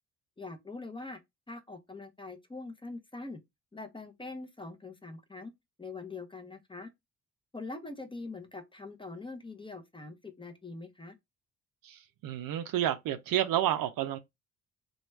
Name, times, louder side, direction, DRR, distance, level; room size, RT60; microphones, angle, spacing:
voice 1, 0.4-1.2 1.5-3.4 3.7-5.5 5.8-6.9 7.5-11.2, left 3 dB, 10° left, 0.8 m, -43 dB
voice 2, 11.8-14.2, right 12 dB, 55° right, 0.5 m, -30 dB
2.9 x 2.3 x 3.1 m
hypercardioid pair, 45°, 42 cm